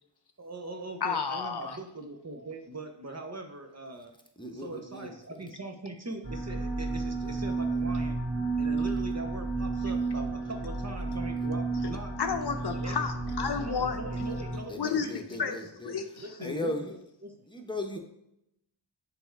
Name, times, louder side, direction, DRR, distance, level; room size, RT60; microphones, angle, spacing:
voice 1, 0.4-4.1 4.5-8.2 8.6-12.1 12.7-13.1 13.6-15.6 16.2-16.7 17.2-17.3, right 2 dB, 35° right, 4 dB, 0.9 m, -41 dB
voice 2, 1.0-1.8 12.2-14.3 14.8-15.6 15.8-16.6, left 6 dB, 55° left, 6 dB, 0.7 m, -32 dB
voice 3, 4.4-5.4 14.7-16.0 16.4-17.0 17.5-18.0, left 1 dB, 10° left, 3 dB, 1.0 m, -37 dB
sound 1, 6.2-14.6, right 3 dB, 50° right, 2.2 m, -32 dB
6.9 x 3.4 x 4.6 m, 0.80 s
wide cardioid pair, 60°, 47 cm